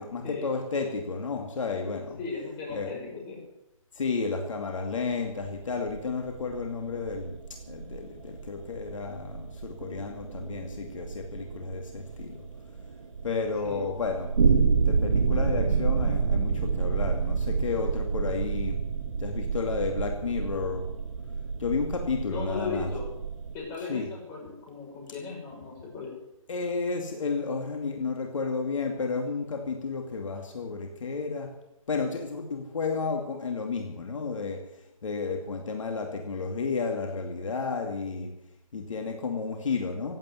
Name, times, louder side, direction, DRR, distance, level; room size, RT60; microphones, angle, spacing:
voice 1, 0.0-2.2 2.7-2.9 3.9-7.4 7.7-12.4 13.2-14.3 14.9-18.8 19.2-20.9 21.6-22.9 23.9-24.1 26.5-31.5 31.9-34.6 35.0-38.3 38.7-40.2, left 4 dB, 65° left, 3 dB, 2.5 m, -32 dB
voice 2, 2.2-3.4 13.6-13.8 22.3-23.1 23.5-26.1, left 4 dB, 20° left, -3 dB, 6.6 m, -37 dB
sound 1, 5.0-23.5, right 5 dB, 55° right, 3.3 m, -29 dB
16.0 x 8.9 x 9.8 m, 0.89 s
hypercardioid pair, 160°, 18 cm